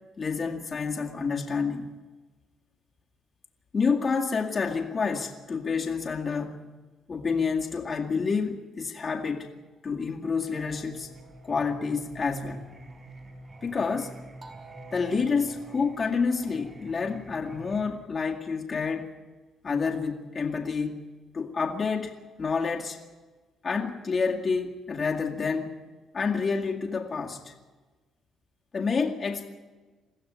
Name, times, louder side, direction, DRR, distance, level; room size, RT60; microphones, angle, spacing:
voice 1, 0.2-1.9 3.7-6.6 7.1-9.5 9.8-11.1 11.4-12.7 13.6-14.2 14.9-19.1 19.6-21.1 21.3-23.0 23.6-25.8 26.1-27.5 28.7-29.5, left 5 dB, 35° left, 0 dB, 2.1 m, -28 dB
Singing, 10.2-17.9, right 2 dB, 25° right, 5.0 m, -47 dB
22.0 x 15.0 x 9.5 m, 1.3 s
cardioid pair, 120°, 0 cm